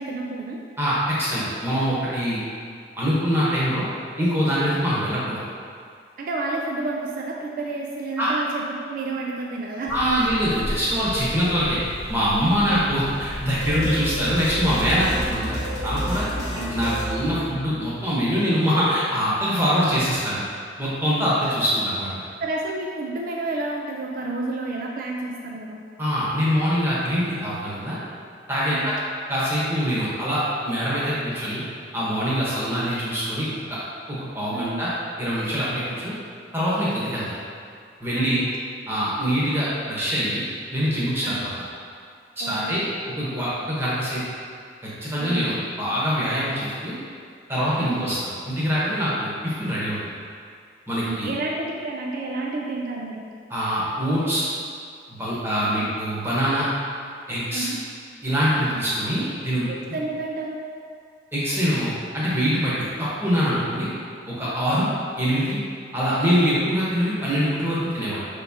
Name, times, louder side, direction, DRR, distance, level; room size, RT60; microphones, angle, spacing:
voice 1, 0.0-0.6 6.2-9.9 10.2-10.3 12.7-13.0 16.4-16.7 22.4-25.8 28.7-28.9 34.5-34.8 38.1-38.5 41.2-41.4 42.4-42.8 45.2-45.4 47.8-48.1 51.0-53.3 55.7-55.9 57.5-57.8 58.5-58.8 59.7-60.6 64.7-65.0, right 2 dB, 45° right, -1 dB, 0.3 m, -30 dB
voice 2, 0.8-2.4 3.0-3.9 4.2-5.4 8.2-8.3 9.9-11.8 12.1-16.3 16.7-20.4 20.8-22.1 26.0-28.0 28.5-28.9 29.3-31.6 31.9-33.5 34.1-34.9 35.2-36.1 36.5-37.4 38.0-38.4 38.9-40.4 40.7-41.4 42.4-42.8 43.2-44.2 44.8-47.0 47.5-48.2 48.4-50.0 50.9-51.3 53.5-54.4 55.1-56.7 57.3-57.7 58.2-59.7 61.3-63.9 64.3-64.9 65.2-65.6 65.9-68.3, equal, 10° right, -8 dB, 1.0 m, -24 dB
sound 1, 9.9-15.3, left 1 dB, 30° left, 0.4 m, -35 dB
sound 2, 13.6-17.9, equal, 60° left, 1.0 m, -30 dB
5.3 x 3.5 x 2.7 m, 2.3 s
head